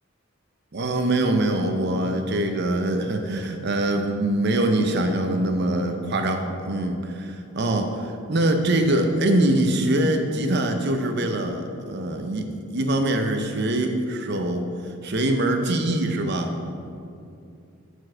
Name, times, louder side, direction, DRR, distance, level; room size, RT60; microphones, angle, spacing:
voice 1, 0.7-14.7 15.0-16.6, right 1 dB, 55° right, 5 dB, 0.7 m, -23 dB
6.4 x 4.6 x 6.3 m, 2.5 s
head